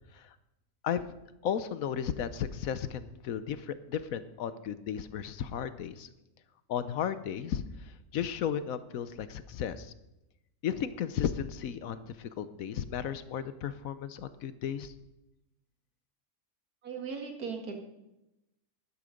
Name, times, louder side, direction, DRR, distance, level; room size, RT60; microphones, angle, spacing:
voice 1, 1.4-6.1 6.7-9.9 10.6-14.9, left 8 dB, 70° left, 13 dB, 1.1 m, -34 dB
voice 2, 16.8-17.8, right 5 dB, 85° right, 4 dB, 2.4 m, -38 dB
12.0 x 11.5 x 5.1 m, 0.92 s
omnidirectional pair, 1.6 m